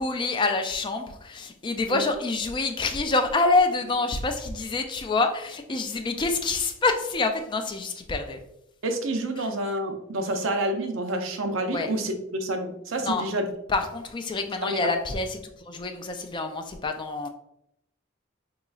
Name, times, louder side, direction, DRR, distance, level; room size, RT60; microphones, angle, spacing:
voice 1, 0.0-8.4 9.4-9.5 11.7-11.9 13.0-13.2 13.7-17.3, left 3 dB, 25° left, 5 dB, 0.3 m, -27 dB
voice 2, 8.8-13.5 14.6-14.9, right 1 dB, 70° right, 6 dB, 0.5 m, -28 dB
3.8 x 3.0 x 2.3 m, 0.80 s
head